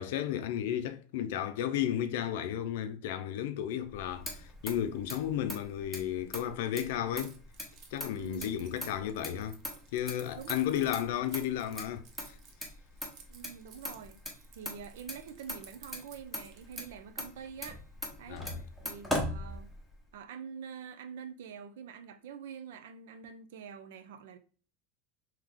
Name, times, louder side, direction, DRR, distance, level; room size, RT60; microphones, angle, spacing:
voice 1, 0.0-7.4 7.9-9.6 9.9-12.4 18.3-18.6, left 10 dB, 75° left, 0.4 m, -33 dB
Motor vehicle (road), 3.9-20.1, left 1 dB, ahead, 0.9 m, -41 dB
Keys jangling, 7.2-17.0, right 6 dB, 45° right, 0.7 m, -57 dB
voice 2, 8.2-8.6 10.3-10.9 13.3-14.2 14.5-17.8 18.2-18.4 18.8-19.7 20.1-24.4, right 7 dB, 80° right, 0.5 m, -46 dB
3.4 x 2.8 x 3.6 m
supercardioid pair, 145°, 0 cm